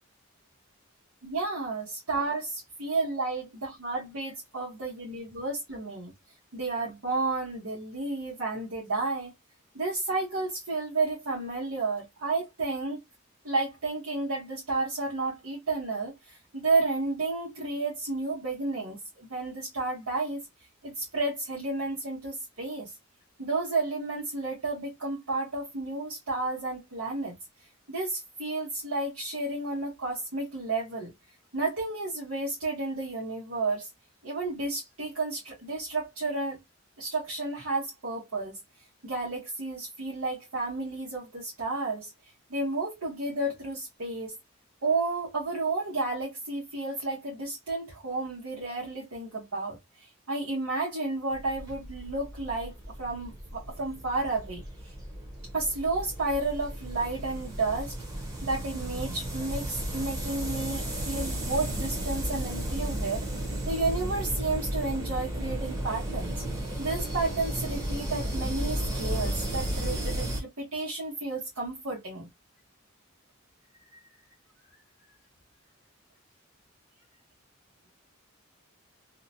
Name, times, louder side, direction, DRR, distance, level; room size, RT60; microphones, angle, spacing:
voice 1, 1.2-6.1 6.5-9.3 9.7-13.0 13.4-20.4 20.8-22.9 23.4-27.4 27.9-31.1 31.5-33.9 34.2-36.6 37.0-38.6 39.0-42.1 42.5-44.3 44.8-52.7 53.0-54.9 55.5-58.0 58.4-63.2 63.7-66.4 66.8-72.3, right 3 dB, 90° right, 1.1 m, -32 dB
sound 1, 51.3-70.4, right 1 dB, 15° right, 0.8 m, -34 dB
2.8 x 2.1 x 2.6 m
head